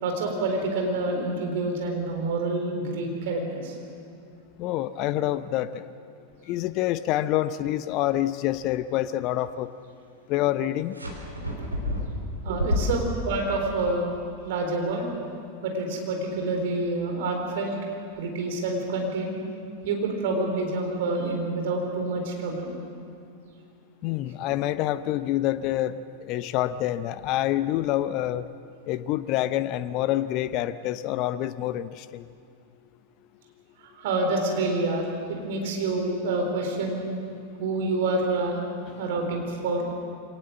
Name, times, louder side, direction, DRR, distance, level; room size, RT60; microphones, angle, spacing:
voice 1, 0.0-3.8 12.4-14.1 14.4-15.1 15.6-17.7 18.2-19.3 19.8-22.7 33.8-37.1 37.6-38.6 39.0-39.9, right 2 dB, 55° right, 2 dB, 4.2 m, -27 dB
voice 2, 4.6-5.8 6.5-9.7 10.3-10.9 24.0-25.9 26.3-28.4 28.9-32.2, left 13 dB, 40° left, 14 dB, 0.7 m, -27 dB
sound 1, 10.9-13.3, equal, 85° right, 3.6 m, -29 dB
24.0 x 19.0 x 7.5 m, 2.3 s
figure-of-eight pair, 90°, 0 cm